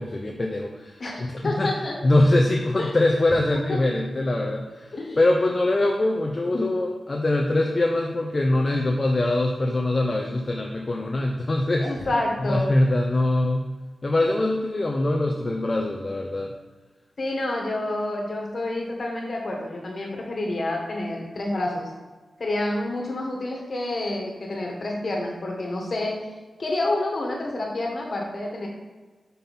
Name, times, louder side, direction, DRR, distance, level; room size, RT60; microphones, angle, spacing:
voice 1, 0.0-1.7 2.0-11.9 12.4-13.7 14.0-16.5, left 2 dB, 40° left, 1 dB, 0.6 m, -23 dB
voice 2, 1.0-1.9 2.8-3.0 3.7-3.8 4.9-5.2 11.8-12.6 17.2-21.9 22.4-26.2 26.6-28.7, left 2 dB, 55° left, 0 dB, 1.6 m, -28 dB
5.6 x 5.4 x 4.2 m, 1.3 s
cardioid pair, 75°, 0 cm